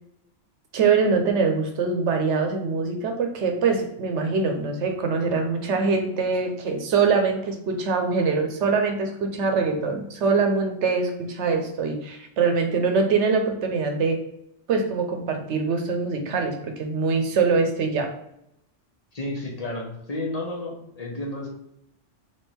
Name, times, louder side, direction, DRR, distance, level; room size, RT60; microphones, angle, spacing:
voice 1, 0.7-14.2 14.7-18.1, right 4 dB, 75° right, 4 dB, 1.0 m, -23 dB
voice 2, 19.1-21.5, left 2 dB, 35° left, -3 dB, 1.0 m, -31 dB
3.6 x 3.3 x 4.3 m, 0.79 s
omnidirectional pair, 1.2 m